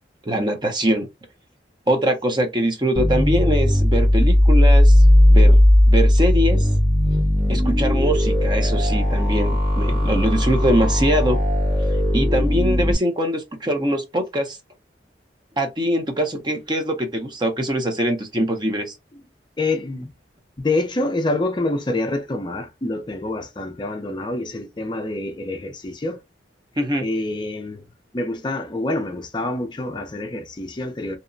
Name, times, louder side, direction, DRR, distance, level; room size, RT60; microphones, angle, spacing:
voice 1, 0.2-1.1 1.9-5.0 5.3-5.6 5.9-6.7 7.5-11.4 12.1-14.6 15.6-19.0 26.8-27.0, equal, 25° right, 0.6 m, -22 dB
sound 1, 3.0-13.0, left 1 dB, 50° right, 1.5 m, -16 dB
voice 2, 19.6-20.1 20.6-26.2 27.0-27.8 28.1-31.2, left 2 dB, 25° left, 0.4 m, -26 dB
2.8 x 2.1 x 2.5 m
head